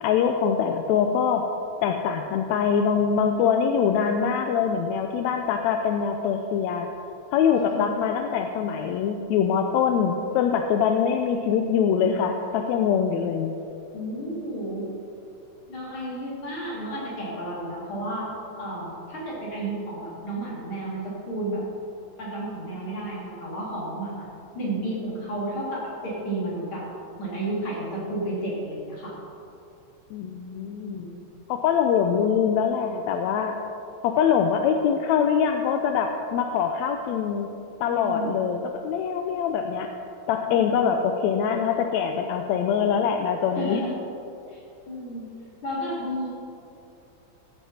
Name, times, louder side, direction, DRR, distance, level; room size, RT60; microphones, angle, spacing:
voice 1, 0.0-1.5 1.8-6.9 7.3-13.6 30.1-31.1 31.5-33.5 34.0-37.5 37.8-39.9 40.3-43.8, left 7 dB, 80° left, 5 dB, 1.8 m, -23 dB
voice 2, 7.6-7.9 13.9-14.9 15.7-21.6 22.2-24.3 24.5-26.9 27.2-29.2 30.8-31.3 37.8-38.4 40.5-40.8 43.6-44.0 44.5-45.3 45.6-46.3, right 1 dB, 45° left, -6 dB, 3.8 m, -32 dB
14.5 x 9.3 x 4.3 m, 2.7 s
omnidirectional pair, 3.3 m